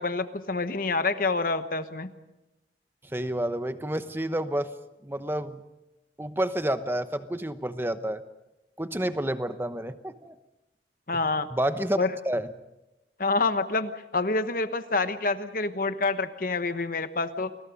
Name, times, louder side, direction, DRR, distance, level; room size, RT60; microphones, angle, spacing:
voice 1, 0.0-2.1 11.1-11.5 12.0-12.1 13.2-17.5, left 3 dB, 50° left, 10 dB, 1.1 m, -27 dB
voice 2, 3.1-4.7 5.0-5.6 6.2-8.2 8.8-10.3 11.5-12.5, right 1 dB, 15° right, 10 dB, 0.9 m, -29 dB
29.5 x 21.5 x 5.2 m, 0.96 s
head